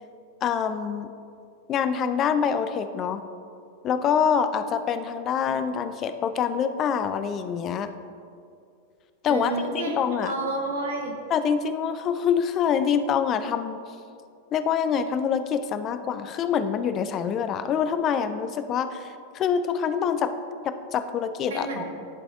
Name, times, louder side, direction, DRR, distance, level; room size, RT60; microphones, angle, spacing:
voice 1, 0.4-1.1 1.7-3.2 3.8-7.9 9.2-10.3 11.3-13.8 14.5-20.3 20.6-21.8, left 7 dB, 35° left, 11 dB, 0.4 m, -25 dB
voice 2, 9.3-11.1 21.5-21.9, right 2 dB, 70° right, 1 dB, 1.1 m, -30 dB
10.5 x 4.0 x 3.7 m, 2.4 s
figure-of-eight pair, 90°, 0 cm